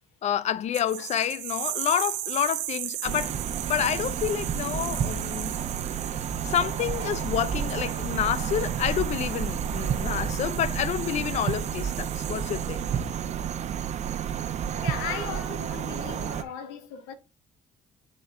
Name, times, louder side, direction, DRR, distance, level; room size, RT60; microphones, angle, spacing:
voice 1, 0.2-3.4 3.7-5.5 5.9-6.0 6.5-12.8, left 10 dB, 50° left, 0.6 m, -28 dB
sound 1, 0.7-13.0, right 15 dB, 75° right, 0.8 m, -37 dB
sound 2, 3.0-16.4, right 8 dB, 50° right, 0.9 m, -30 dB
voice 2, 14.3-17.1, left 7 dB, 75° left, 1.0 m, -38 dB
9.4 x 3.7 x 3.7 m
hypercardioid pair, 50°, 15 cm